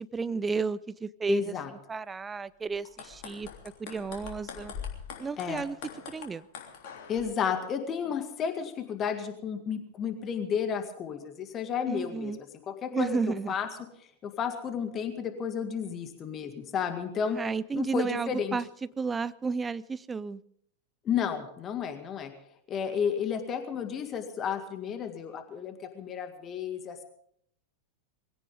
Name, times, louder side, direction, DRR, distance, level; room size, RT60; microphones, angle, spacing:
voice 1, 0.0-1.5 1.9-3.5 3.8-4.7 5.2-5.8 6.1-6.4 11.9-12.4 12.9-13.5 17.3-18.7 19.0-20.4, right 5 dB, 15° right, 17 dB, 0.5 m, -32 dB
voice 2, 1.3-1.7 5.4-5.6 7.1-13.1 13.5-13.7 14.2-17.4 17.8-18.6 21.0-22.3 22.7-27.0, left 7 dB, 30° left, 7 dB, 2.1 m, -32 dB
sound 1, 2.7-7.2, left 7 dB, 50° left, 3.2 m, -43 dB
21.5 x 16.5 x 3.7 m, 0.69 s
figure-of-eight pair, 90°, 0 cm